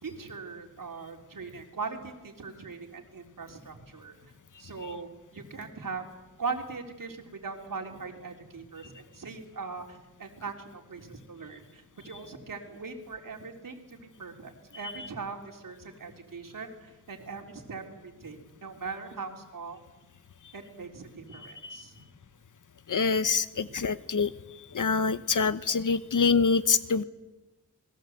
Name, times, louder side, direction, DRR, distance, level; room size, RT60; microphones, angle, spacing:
voice 1, 0.0-4.2 4.6-6.1 6.4-19.8 20.5-22.1 23.2-23.9 25.0-25.1, right 4 dB, 85° right, 3 dB, 3.5 m, -40 dB
voice 2, 22.9-24.3 24.7-27.0, left 5 dB, 70° left, 14 dB, 1.1 m, -25 dB
28.0 x 20.5 x 8.0 m, 1.1 s
wide cardioid pair, 100°, 32 cm